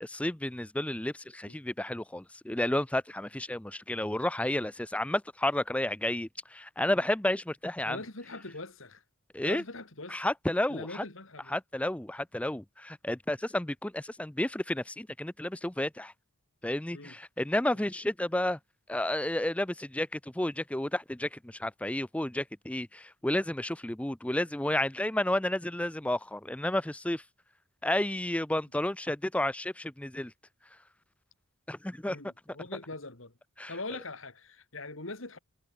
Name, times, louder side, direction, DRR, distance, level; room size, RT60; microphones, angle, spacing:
voice 1, 0.0-8.0 9.3-9.6 10.1-11.1 11.5-16.1 16.6-18.6 18.9-27.2 27.8-30.3 31.7-32.2 33.6-33.7, left 1 dB, 5° left, 0.5 m, -31 dB
voice 2, 7.8-9.0 9.4-10.3 10.7-11.6 16.9-17.1 17.8-17.9 32.1-33.3 33.7-35.4, left 2 dB, 60° left, 2.7 m, -42 dB
head